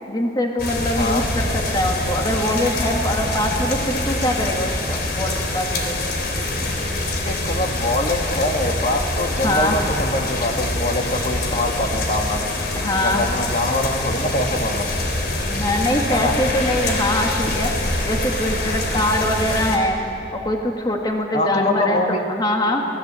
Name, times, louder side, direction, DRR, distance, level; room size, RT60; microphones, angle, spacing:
voice 1, 0.1-6.0 9.4-9.8 12.7-13.2 15.4-17.7 18.1-20.0 20.3-22.8, left 1 dB, 25° left, 1 dB, 1.8 m, -23 dB
sound 1, 0.6-19.8, left 2 dB, 60° left, 3.4 m, -25 dB
voice 2, 1.0-1.3 7.3-12.5 13.0-14.9 16.1-16.4 21.3-22.2, left 1 dB, 40° left, 3 dB, 2.0 m, -24 dB
27.5 x 18.5 x 8.3 m, 2.8 s
head